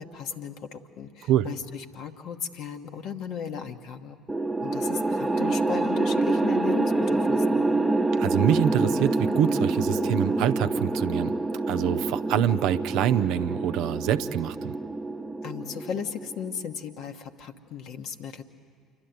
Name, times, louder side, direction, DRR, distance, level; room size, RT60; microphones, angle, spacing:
voice 1, 0.0-4.2 4.6-7.7 15.4-18.4, left 7 dB, 60° left, 6 dB, 1.1 m, -36 dB
sound 1, 4.3-16.6, right 2 dB, 10° right, 0.8 m, -26 dB
voice 2, 8.2-11.4 11.7-14.7, right 10 dB, 65° right, 9 dB, 0.6 m, -25 dB
28.0 x 12.0 x 9.3 m, 2.2 s
hypercardioid pair, 60°, 0 cm